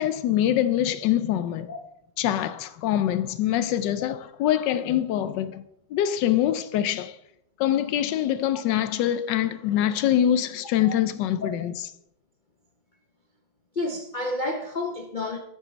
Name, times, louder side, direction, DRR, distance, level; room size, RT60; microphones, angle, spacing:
voice 1, 0.0-1.7 2.2-5.6 5.9-7.2 7.6-11.9, left 11 dB, 75° left, 1.2 m, -24 dB
voice 2, 13.7-15.4, left 2 dB, 50° left, 0.5 m, -30 dB
10.0 x 8.3 x 4.0 m
omnidirectional pair, 2.0 m